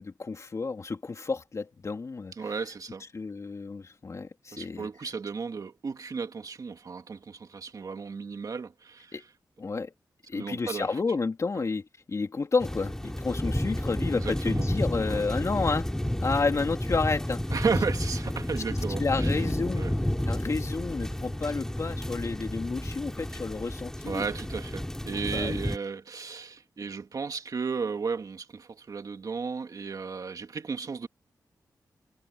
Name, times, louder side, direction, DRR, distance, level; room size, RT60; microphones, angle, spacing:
voice 1, 0.0-2.5 3.1-4.9 9.1-9.2 9.6-9.9 10.3-15.9 16.2-17.4 18.7-19.8 20.3-24.3 25.3-25.6, left 4 dB, 45° left, 3.1 m, -31 dB
voice 2, 2.4-3.0 4.5-9.2 10.3-10.9 14.1-14.7 15.1-15.2 17.5-19.4 19.8-19.9 24.1-31.1, right 5 dB, 55° right, 2.4 m, -34 dB
sound 1, 12.6-25.8, left 1 dB, 5° left, 3.6 m, -31 dB
wide cardioid pair, 100°, 7 cm